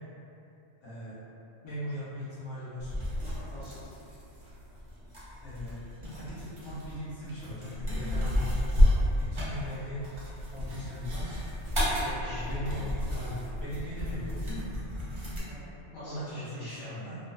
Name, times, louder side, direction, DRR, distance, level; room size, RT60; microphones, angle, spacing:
voice 1, 0.8-1.2 1.6-2.9 5.4-5.8 6.1-8.7 9.2-10.0 10.5-11.3 12.3-14.6 16.0-17.2, left 1 dB, 45° left, -11 dB, 0.4 m, -39 dB
sound 1, 2.8-15.4, left 1 dB, 40° right, 0.4 m, -31 dB
voice 2, 3.5-3.9 10.8-10.9 11.9-12.8 15.5-17.0, equal, 75° left, -12 dB, 0.9 m, -45 dB
2.5 x 2.1 x 2.4 m, 2.7 s
omnidirectional pair, 1.2 m